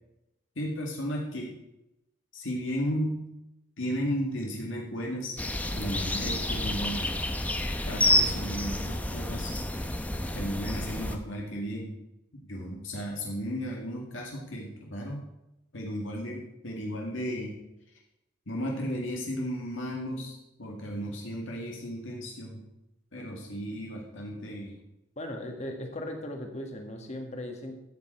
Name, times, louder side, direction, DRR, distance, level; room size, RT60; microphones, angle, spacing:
voice 1, 0.6-1.5 2.3-3.3 3.8-5.4 5.7-7.2 7.9-9.5 10.3-11.9 12.3-15.2 15.7-17.5 18.5-22.6 23.1-24.8, equal, 75° left, -1 dB, 2.1 m, -34 dB
sound 1, 5.4-11.2, left 1 dB, 10° left, 0.7 m, -29 dB
voice 2, 25.2-27.7, left 1 dB, 35° left, 3 dB, 1.6 m, -37 dB
12.5 x 7.9 x 4.5 m, 0.89 s
head